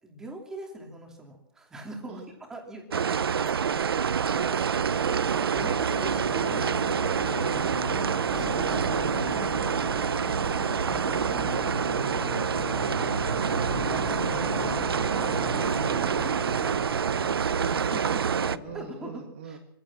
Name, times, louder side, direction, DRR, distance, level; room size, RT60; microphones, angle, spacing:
voice 1, 0.0-4.0 4.3-7.6 8.3-9.6 10.4-12.8 13.5-14.6 15.1-18.2 18.7-19.6, right 1 dB, 5° right, 2 dB, 2.9 m, -43 dB
sound 1, 2.9-18.6, right 7 dB, 80° right, 0.9 m, -27 dB
sound 2, 5.6-18.9, left 10 dB, 25° left, 1.0 m, -39 dB
voice 2, 12.7-14.2 15.1-15.4 17.8-19.6, right 6 dB, 30° right, 3 dB, 2.2 m, -43 dB
24.0 x 16.0 x 7.5 m, 0.79 s
hypercardioid pair, 180°, 12 cm